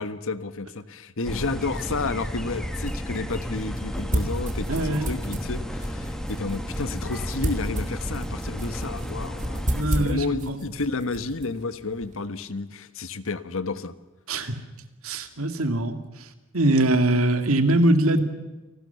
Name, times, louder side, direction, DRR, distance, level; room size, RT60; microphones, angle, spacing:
voice 1, 0.0-14.0, left 3 dB, 65° left, 12 dB, 1.4 m, -31 dB
sound 1, 1.2-9.8, equal, 5° left, 2.3 m, -32 dB
sound 2, 2.3-12.2, right 1 dB, 35° right, 3.4 m, -33 dB
voice 2, 4.7-5.1 9.7-10.6 14.3-14.6 15.0-15.9 16.5-18.2, right 1 dB, 65° right, 8 dB, 2.5 m, -22 dB
29.0 x 19.5 x 7.0 m, 1.2 s
head